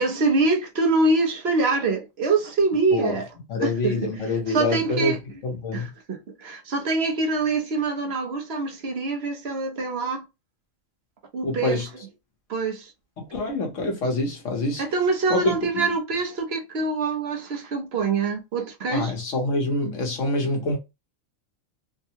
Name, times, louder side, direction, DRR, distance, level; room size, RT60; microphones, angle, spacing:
voice 1, 0.0-3.3 3.6-3.9 4.5-5.2 5.7-10.2 11.3-11.9 12.5-12.9 14.8-19.1, right 3 dB, 55° right, 1.0 m, -24 dB
voice 2, 3.5-5.9 11.4-11.8 13.2-14.8 15.3-15.6 18.9-20.8, left 2 dB, 70° left, 1.4 m, -26 dB
3.5 x 2.2 x 2.8 m
omnidirectional pair, 1.4 m